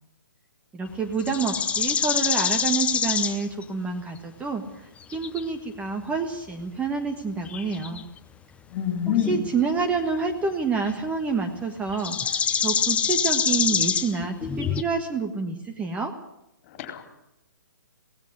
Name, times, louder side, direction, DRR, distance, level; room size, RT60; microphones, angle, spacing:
voice 1, 0.7-4.6 5.1-8.0 9.1-16.1, right 4 dB, 10° right, 4 dB, 1.5 m, -28 dB
sound 1, 1.2-3.6 5.1-5.4 7.5-8.0 9.2-9.6 11.9-14.8, left 7 dB, 10° left, 0.8 m, -25 dB
voice 2, 8.7-9.4 16.8-17.1, left 10 dB, 35° left, 6 dB, 4.0 m, -26 dB
18.0 x 15.0 x 9.6 m, 0.87 s
hypercardioid pair, 135°, 11 cm